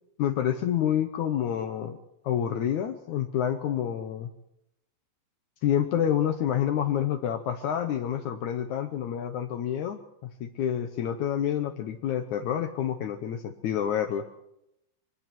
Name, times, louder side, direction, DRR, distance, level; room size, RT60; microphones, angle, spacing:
voice 1, 0.2-2.0 2.2-4.3 5.6-14.3, left 10 dB, 85° left, 7 dB, 1.7 m, -28 dB
23.0 x 18.5 x 6.1 m, 0.83 s
omnidirectional pair, 4.9 m